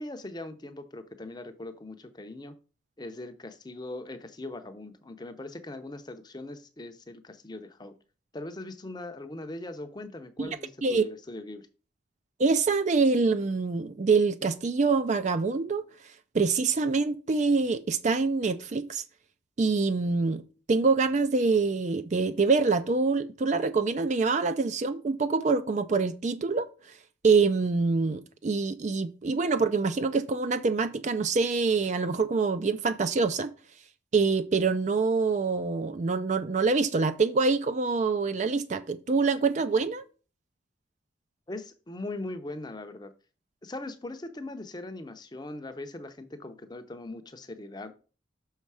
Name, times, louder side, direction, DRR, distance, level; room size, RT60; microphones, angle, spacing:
voice 1, 0.0-2.6 3.0-7.9 8.3-11.7 41.5-43.1 43.6-47.9, left 2 dB, 20° left, 0.6 m, -40 dB
voice 2, 10.4-11.0 12.4-15.8 16.3-19.0 19.6-26.7 27.2-33.5 34.1-40.0, right 4 dB, 35° right, 0.4 m, -25 dB
6.2 x 5.6 x 4.8 m
head